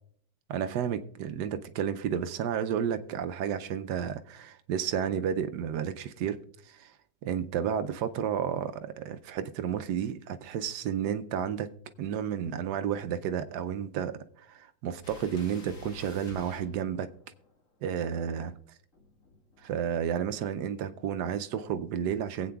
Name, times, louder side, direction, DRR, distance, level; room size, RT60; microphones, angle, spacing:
voice 1, 0.5-6.4 6.7-6.9 7.2-11.7 12.0-14.2 14.5-17.1 17.8-18.5 19.6-22.5, right 8 dB, 70° right, 1.1 m, -31 dB
sound 1, 15.0-17.5 18.9-20.2, left 1 dB, 45° left, 2.0 m, -47 dB
23.0 x 8.5 x 2.3 m
omnidirectional pair, 2.0 m